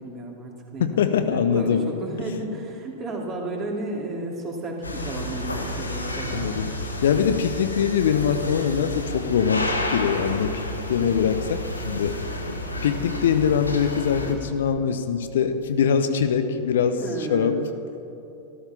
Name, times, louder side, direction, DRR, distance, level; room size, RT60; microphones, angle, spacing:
voice 1, 0.0-6.6 17.0-17.6, right 2 dB, 30° right, 0 dB, 2.8 m, -33 dB
voice 2, 0.8-1.9 6.3-10.6 10.9-12.2 12.8-17.0 17.3-17.6, left 7 dB, 60° left, 9 dB, 0.8 m, -23 dB
sound 1, 4.8-14.3, left 1 dB, 80° left, 1.4 m, -31 dB
13.5 x 13.5 x 5.8 m, 2.9 s
figure-of-eight pair, 90°, 0 cm